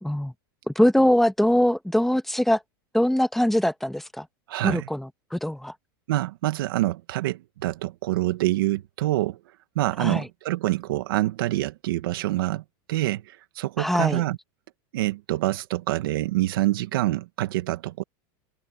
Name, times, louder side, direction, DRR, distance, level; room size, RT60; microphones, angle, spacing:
voice 1, 0.0-0.3 0.7-2.6 2.9-4.3 4.6-5.7 10.0-10.3 13.8-14.2, left 1 dB, ahead, 1.3 m, -22 dB
voice 2, 4.5-4.9 6.1-9.4 9.7-12.6 12.9-14.4 14.9-18.0, right 16 dB, 80° right, 1.6 m, -26 dB
supercardioid pair, 130°, 12 cm